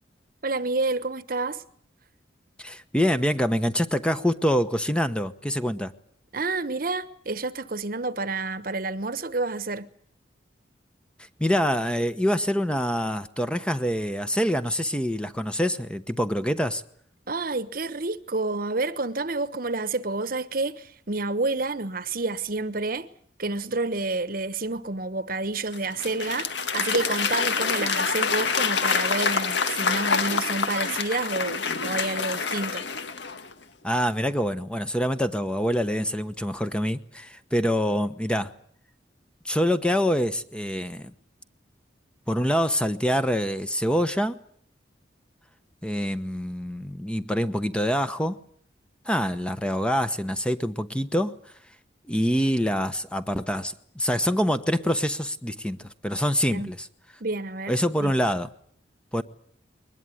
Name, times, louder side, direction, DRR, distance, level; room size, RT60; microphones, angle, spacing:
voice 1, 0.4-1.6 6.3-9.9 17.3-23.1 23.4-32.9 56.5-56.7 57.2-58.1, right 3 dB, 50° right, 1.2 m, -29 dB
voice 2, 2.6-5.9 11.4-16.8 33.8-38.5 39.4-41.1 42.3-44.4 45.8-48.4 49.0-51.3 52.1-56.9 57.7-58.5 59.1-59.2, equal, 5° left, 1.0 m, -25 dB
Applause / Crowd, 25.7-33.5, left 5 dB, 75° left, 1.8 m, -26 dB
22.5 x 20.0 x 9.2 m
head